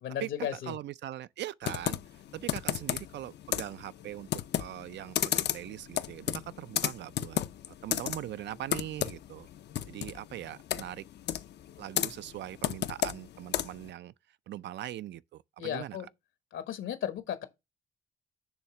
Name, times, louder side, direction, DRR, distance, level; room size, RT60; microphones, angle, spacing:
voice 1, 0.0-0.7 15.6-16.1 16.5-17.5, left 10 dB, 80° left, 1.2 m, -35 dB
voice 2, 0.7-2.0 2.3-7.4 7.8-9.5 9.9-11.0 11.8-14.1 14.5-16.0, right 13 dB, 65° right, 0.4 m, -41 dB
Computer keyboard, 1.6-13.9, left 11 dB, 60° left, 0.5 m, -34 dB
7.1 x 3.2 x 5.8 m
cardioid pair, 90°, 20 cm